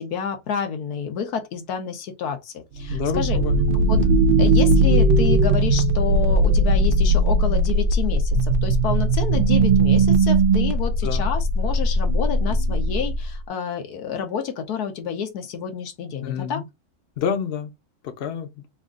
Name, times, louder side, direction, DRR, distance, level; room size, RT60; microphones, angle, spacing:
voice 1, 0.0-3.4 3.7-4.0 4.4-16.6, left 7 dB, 85° left, 1.4 m, -29 dB
sound 1, 2.8-13.4, right 2 dB, 65° right, 0.5 m, -19 dB
voice 2, 2.9-3.6 3.9-4.2 11.0-11.3 16.2-16.6 17.2-17.7 18.0-18.5, left 7 dB, 50° left, 0.8 m, -28 dB
3.5 x 2.4 x 3.6 m
omnidirectional pair, 1.6 m